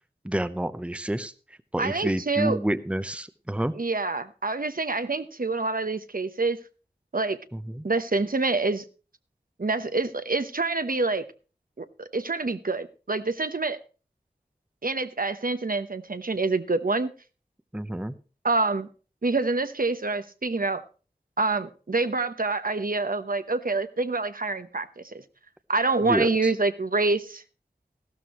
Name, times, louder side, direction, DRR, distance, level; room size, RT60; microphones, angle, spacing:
voice 1, 0.2-1.3 1.7-3.7 7.5-7.8 17.7-18.1 26.0-26.5, right 1 dB, 5° right, 12 dB, 0.8 m, -29 dB
voice 2, 1.8-2.6 3.7-6.6 7.1-7.4 7.8-8.8 9.6-11.2 11.8-13.8 14.8-17.1 18.4-18.9 19.2-20.8 21.4-25.2 25.7-27.4, right 3 dB, 60° right, 10 dB, 0.9 m, -26 dB
14.5 x 12.5 x 3.1 m, 0.35 s
wide cardioid pair, 45°, 17 cm